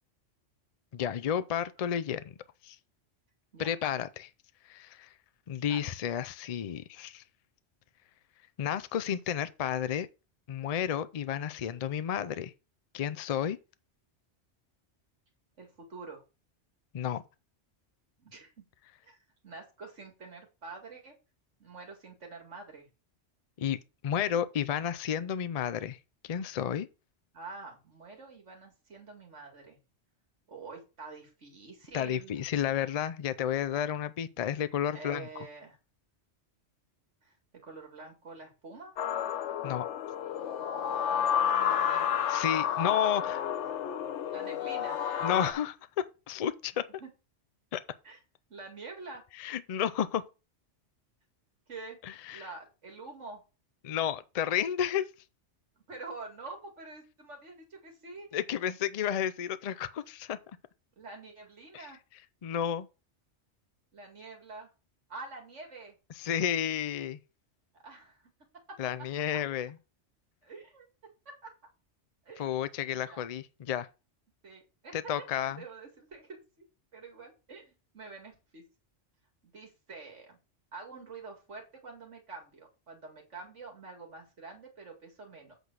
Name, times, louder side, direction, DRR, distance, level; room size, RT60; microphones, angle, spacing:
voice 1, 0.9-2.3 2.6-2.8 3.6-4.3 4.7-5.1 5.5-7.2 8.6-10.1 10.5-12.5 12.9-13.6 16.9-17.2 23.6-23.8 24.0-26.0 26.2-26.9 31.9-35.3 39.6-39.9 42.3-43.4 45.2-46.8 47.7-47.8 49.4-50.2 52.0-52.4 53.8-55.1 58.3-60.4 61.7-61.9 62.4-62.9 66.2-67.2 68.8-69.7 72.4-73.9 74.9-75.6, left 9 dB, 50° left, 0.5 m, -31 dB
voice 2, 15.6-16.2 18.2-18.5 19.0-19.2 19.4-21.1 21.6-22.9 27.3-29.8 30.5-32.4 34.9-35.8 37.2-37.3 37.6-38.9 41.6-42.3 44.3-45.0 47.0-47.1 48.0-48.2 48.5-49.2 51.7-52.0 52.3-53.4 55.8-58.4 61.0-62.0 63.9-64.7 65.1-65.9 67.8-68.2 68.7-68.8 69.3-69.4 70.4-70.9 71.3-71.5 72.3-72.5 72.9-73.2 74.4-76.7 76.9-78.6 79.5-80.4 80.7-85.5, right 3 dB, 85° right, 2.6 m, -46 dB
sound 1, 39.0-45.5, left 9 dB, 80° left, 1.0 m, -30 dB
8.1 x 4.0 x 6.1 m
omnidirectional pair, 1.2 m